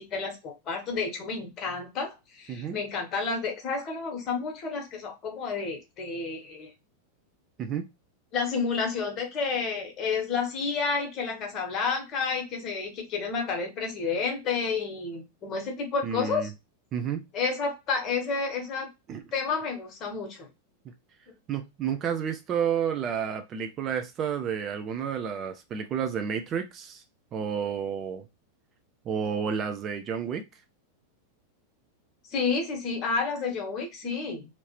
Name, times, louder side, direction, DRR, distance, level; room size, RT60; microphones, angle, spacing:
voice 1, 0.0-6.7 8.3-16.5 17.3-18.9 19.3-20.5 32.3-34.6, left 5 dB, 35° left, 1.1 m, -30 dB
voice 2, 2.5-2.8 7.6-7.9 16.0-16.5 16.9-17.3 19.1-19.2 20.8-20.9 21.5-27.0 27.3-28.3 29.1-30.5, right 7 dB, 30° right, 0.4 m, -30 dB
2.8 x 2.7 x 3.0 m
figure-of-eight pair, 90°, 0 cm